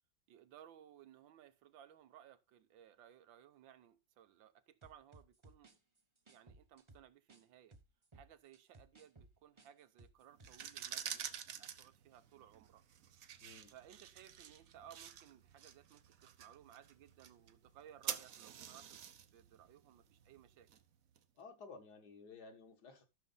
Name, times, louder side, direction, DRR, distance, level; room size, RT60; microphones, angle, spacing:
voice 1, 0.3-5.7 6.3-7.8 8.1-12.8 13.7-19.0 19.3-20.7, right 10 dB, 80° right, 1.6 m, -60 dB
sound 1, 4.8-7.4 7.7-10.8 11.0-11.2, right 2 dB, 20° right, 0.8 m, -62 dB
sound 2, 10.3-21.2, right 9 dB, 60° right, 1.0 m, -49 dB
voice 2, 13.4-13.7 21.4-23.1, left 4 dB, 60° left, 2.0 m, -55 dB
13.0 x 6.6 x 4.0 m
omnidirectional pair, 2.1 m